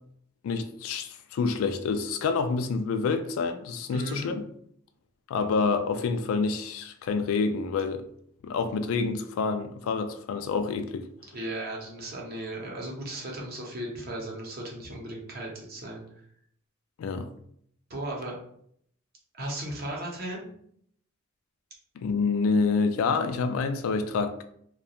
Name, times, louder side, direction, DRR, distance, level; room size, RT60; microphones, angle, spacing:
voice 1, 0.4-4.4 5.3-8.1 8.4-11.1 17.0-17.3 22.0-24.4, left 4 dB, 75° left, 0.3 m, -27 dB
voice 2, 3.9-4.3 11.3-16.0 17.9-18.3 19.4-20.5, right 1 dB, 50° right, 0.7 m, -36 dB
2.3 x 2.2 x 2.8 m
head